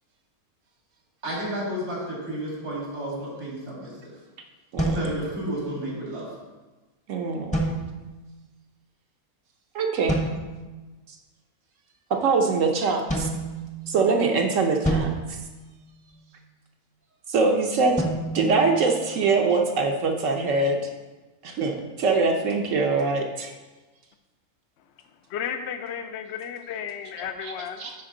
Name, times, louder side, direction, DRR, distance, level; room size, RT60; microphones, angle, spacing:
voice 1, 1.2-3.9 4.9-6.3, right 1 dB, 85° right, -5 dB, 3.0 m, -31 dB
sound 1, 4.8-5.9 7.5-8.3 10.1-10.7 13.1-14.2 14.8-16.3 18.0-19.5, right 1 dB, 5° left, 0.8 m, -30 dB
voice 2, 7.1-7.7 9.7-10.2 12.1-13.3 13.9-15.1 17.3-17.9 18.3-20.8 21.4-23.5 27.4-27.5 27.8-27.9, right 4 dB, 60° right, 3 dB, 1.0 m, -23 dB
voice 3, 25.3-27.9, left 8 dB, 65° left, 7 dB, 0.7 m, -33 dB
9.9 x 4.4 x 3.8 m, 1.2 s
omnidirectional pair, 1.6 m